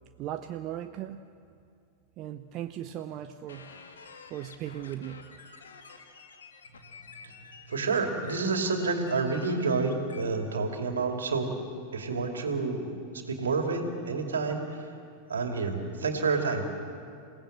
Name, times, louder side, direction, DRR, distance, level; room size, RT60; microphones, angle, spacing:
voice 1, 0.2-1.3 2.2-3.8 4.3-5.3, right 11 dB, 35° right, 9 dB, 0.7 m, -38 dB
sound 1, 3.5-10.2, left 5 dB, 70° left, 2.0 m, -50 dB
voice 2, 7.7-11.6 11.9-14.9 15.3-16.6, right 4 dB, 70° right, 4 dB, 2.8 m, -29 dB
28.0 x 17.0 x 7.9 m, 2.4 s
figure-of-eight pair, 90°, 0 cm